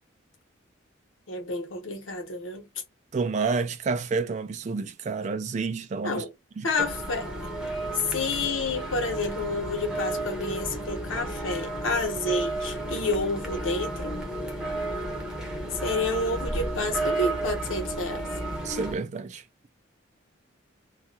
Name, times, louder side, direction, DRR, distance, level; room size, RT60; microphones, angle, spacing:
voice 1, 1.3-2.7 6.0-6.3 6.6-7.3 8.1-14.2 15.8-18.3, left 2 dB, 80° left, 0.9 m, -29 dB
voice 2, 3.1-6.2 6.6-6.7 18.6-19.4, right 4 dB, 35° right, 0.3 m, -29 dB
sound 1, 6.8-19.0, right 2 dB, 5° right, 0.6 m, -32 dB
2.3 x 2.1 x 2.8 m
head